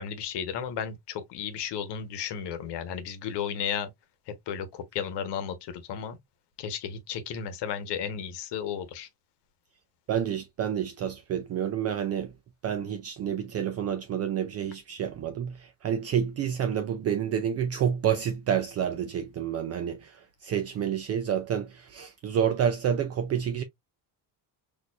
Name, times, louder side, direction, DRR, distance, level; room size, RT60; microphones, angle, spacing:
voice 1, 0.0-3.9 4.3-6.2 6.6-9.1, left 8 dB, 75° left, 1.0 m, -34 dB
voice 2, 10.1-12.3 12.6-23.6, right 8 dB, 40° right, 0.4 m, -29 dB
4.3 x 2.7 x 2.3 m
cardioid pair, 160°, 41 cm